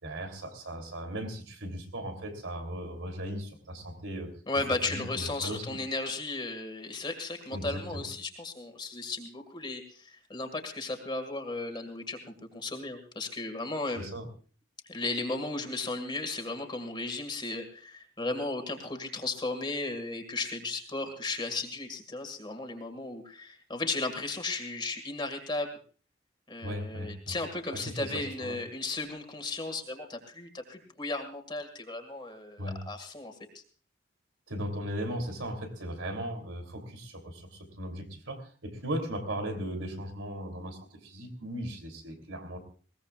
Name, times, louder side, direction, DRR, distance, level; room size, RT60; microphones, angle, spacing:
voice 1, 0.0-4.3 4.9-5.8 7.5-8.0 13.9-14.3 26.6-27.4 27.7-28.6 32.6-32.8 34.5-42.6, equal, 85° right, 6 dB, 3.2 m, -37 dB
voice 2, 4.5-12.2 12.5-14.0 14.9-25.7 26.5-33.6, left 3 dB, 25° left, 4 dB, 1.9 m, -35 dB
21.0 x 19.0 x 2.4 m, 0.41 s
head